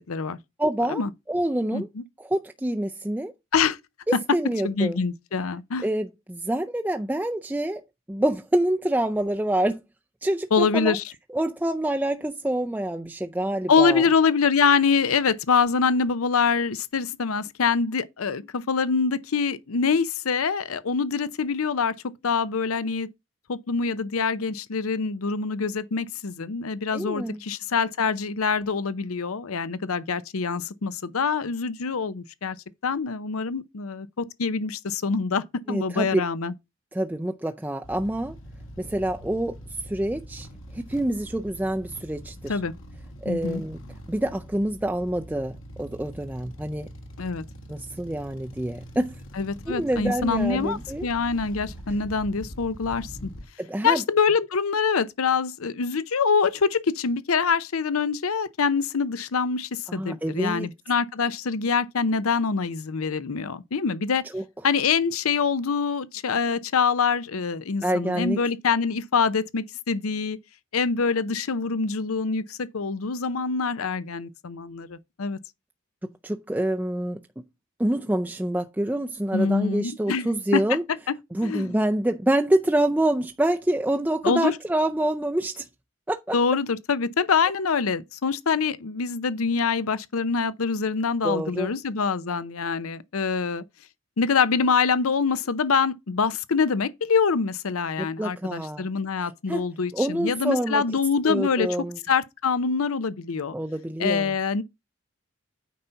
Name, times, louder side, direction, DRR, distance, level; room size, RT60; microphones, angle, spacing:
voice 1, 0.1-0.4 0.9-1.1 1.7-2.0 3.5-3.8 4.6-5.9 10.5-11.0 13.7-21.9 22.2-23.1 23.5-32.6 32.8-36.5 42.5-42.7 43.3-43.6 47.2-47.4 49.4-53.3 53.8-64.2 64.6-70.4 70.7-75.4 79.3-80.3 80.5-80.6 81.4-81.7 84.2-84.6 86.3-93.6 94.2-101.7 102.1-103.5 104.0-104.6, left 5 dB, 85° left, 0.6 m, -25 dB
voice 2, 0.6-1.0 1.3-1.9 2.2-3.3 4.3-5.0 5.8-7.8 8.1-9.8 10.2-11.0 11.3-14.1 26.9-27.4 35.7-36.2 36.9-38.3 38.8-39.6 39.8-40.5 40.7-42.6 43.2-43.8 44.1-46.9 47.7-49.1 49.7-51.1 53.6-54.0 59.9-60.7 64.3-64.4 67.8-68.4 76.2-77.2 77.8-80.8 81.3-85.7 86.1-86.3 91.2-91.7 98.0-98.9 99.2-99.6 99.9-100.8 101.2-102.0 103.5-104.3, right 1 dB, 10° right, 0.4 m, -26 dB
sound 1, 37.8-53.5, equal, 65° left, 1.6 m, -43 dB
9.2 x 4.0 x 5.7 m
head